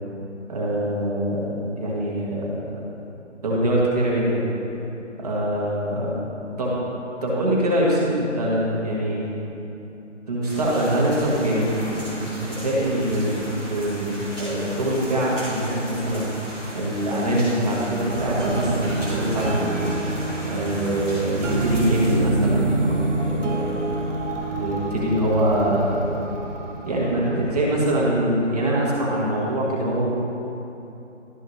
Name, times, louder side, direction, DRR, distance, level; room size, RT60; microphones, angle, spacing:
voice 1, 0.5-2.5 3.4-4.4 5.2-6.2 6.6-6.8 7.2-9.2 10.3-16.3 16.7-19.9 20.5-23.7 24.4-26.2 26.8-30.1, right 1 dB, 30° right, -5 dB, 1.6 m, -24 dB
sound 1, 10.4-22.1, equal, 5° left, 1.0 m, -37 dB
sound 2, 18.1-28.3, right 2 dB, 70° right, 1.6 m, -27 dB
12.5 x 5.5 x 3.1 m, 2.9 s
figure-of-eight pair, 170°, 38 cm